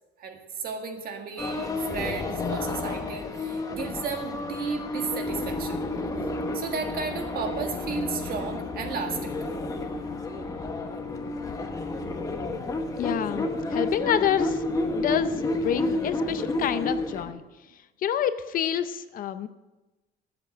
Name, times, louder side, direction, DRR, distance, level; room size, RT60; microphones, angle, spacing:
voice 1, 0.2-5.8 6.5-9.3, right 5 dB, 45° right, 4 dB, 1.8 m, -34 dB
sound 1, 1.4-17.3, left 2 dB, 15° left, 1.1 m, -31 dB
voice 2, 13.0-14.6 14.9-17.4 18.0-19.5, left 9 dB, 45° left, 12 dB, 0.6 m, -28 dB
13.0 x 8.2 x 7.6 m, 1.1 s
cardioid pair, 165°, 21 cm